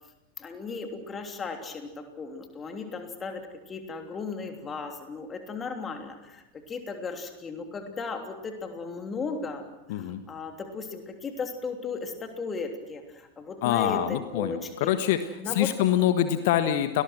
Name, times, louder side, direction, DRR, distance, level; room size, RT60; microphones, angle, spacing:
voice 1, 0.4-9.6 9.9-14.9 15.4-15.7, left 4 dB, 20° left, 4 dB, 3.1 m, -36 dB
voice 2, 9.9-10.2 13.6-17.0, left 11 dB, 50° left, 10 dB, 1.4 m, -25 dB
30.0 x 20.0 x 6.3 m, 1.0 s
figure-of-eight pair, 90°, 0 cm